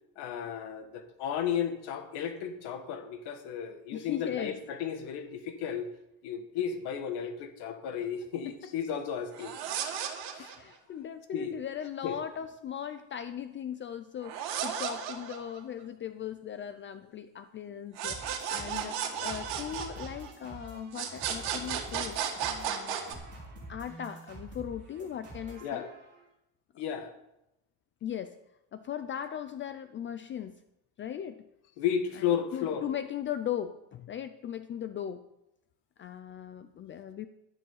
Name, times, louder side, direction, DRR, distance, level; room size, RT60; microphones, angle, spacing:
voice 1, 0.2-5.9 6.2-9.6 10.3-10.5 11.3-11.6 12.0-12.2 25.6-25.9 26.8-27.1 31.8-32.9, left 8 dB, 80° left, 7 dB, 1.8 m, -34 dB
voice 2, 3.9-4.6 8.4-8.7 10.4-18.2 18.5-22.2 22.7-23.2 23.7-25.9 28.0-28.4 28.7-30.6 31.0-31.5 32.1-35.2 36.0-37.3, left 9 dB, 30° left, 11 dB, 0.4 m, -38 dB
sound 1, 9.3-10.7 14.2-15.8 18.0-20.5 20.9-23.1, right 8 dB, 75° right, 2.2 m, -34 dB
sound 2, 18.0-26.2, right 2 dB, 30° right, 5.3 m, -47 dB
12.0 x 10.0 x 5.6 m, 0.86 s
cardioid pair, 165°, 39 cm